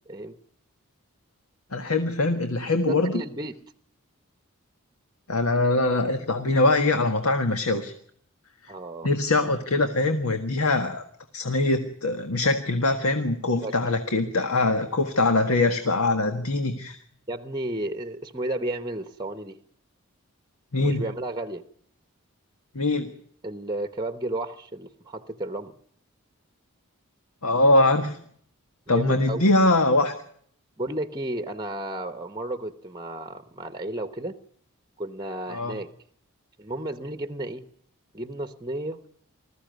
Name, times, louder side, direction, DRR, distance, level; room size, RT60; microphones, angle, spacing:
voice 1, 0.1-0.4 2.9-3.6 8.7-9.1 13.6-13.8 15.9-16.0 17.3-19.6 20.8-21.6 23.4-25.8 28.9-29.4 30.8-34.4 35.0-35.9 36.6-37.7 38.1-39.0, right 1 dB, 20° right, 11 dB, 1.0 m, -33 dB
voice 2, 1.7-3.2 5.3-7.9 9.0-11.0 11.3-17.0 20.7-21.1 22.7-23.1 27.4-28.2 28.9-30.1 35.5-35.8, left 2 dB, 80° left, 7 dB, 1.7 m, -23 dB
20.5 x 14.5 x 9.3 m, 0.63 s
head